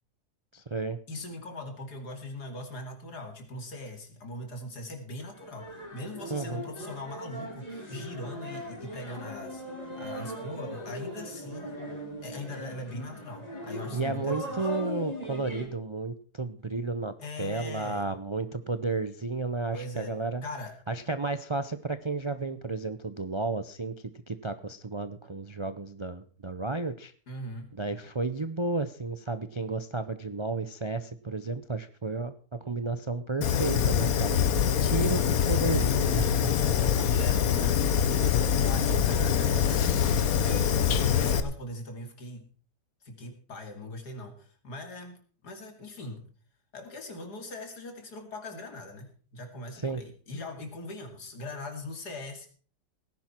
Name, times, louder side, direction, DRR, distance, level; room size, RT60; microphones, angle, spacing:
voice 1, 0.5-1.0 6.3-6.6 13.9-20.4 20.9-27.1 27.7-34.4 34.8-36.5 49.7-50.0, right 3 dB, 50° right, 11 dB, 0.3 m, -32 dB
voice 2, 1.1-9.6 10.0-11.9 12.2-14.7 17.2-18.1 19.7-20.2 20.4-20.7 27.3-27.7 36.8-39.8 40.1-42.5 43.0-46.2 46.7-52.5, left 1 dB, 80° left, 5 dB, 3.1 m, -41 dB
sound 1, 5.4-15.7, equal, 25° left, 3.8 m, -39 dB
Fire, 33.4-41.4, left 8 dB, 65° left, 1.4 m, -24 dB
18.0 x 10.5 x 4.4 m, 0.42 s
omnidirectional pair, 1.7 m